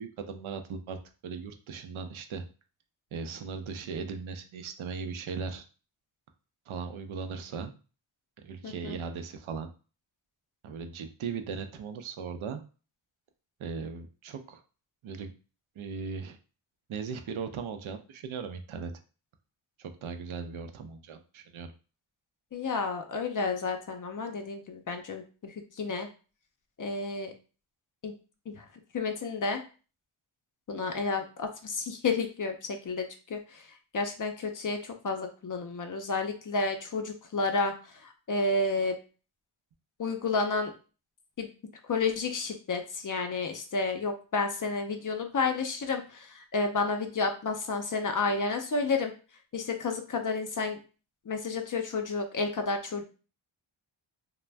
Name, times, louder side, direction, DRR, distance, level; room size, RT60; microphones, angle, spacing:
voice 1, 0.0-2.5 3.1-5.7 6.7-7.7 8.4-9.7 10.6-12.6 13.6-14.6 15.0-15.3 15.8-16.4 16.9-18.9 19.8-21.7, right 5 dB, 75° right, 7 dB, 0.6 m, -38 dB
voice 2, 8.6-9.0 22.5-26.1 26.8-27.3 28.0-28.1 28.5-28.7 28.9-29.6 30.7-33.7 33.9-39.0 40.0-40.7 41.4-41.5 41.9-49.1 49.5-50.8 51.3-53.0, left 3 dB, 40° left, 5 dB, 0.5 m, -31 dB
2.5 x 2.1 x 3.2 m, 0.35 s
wide cardioid pair, 85°, 49 cm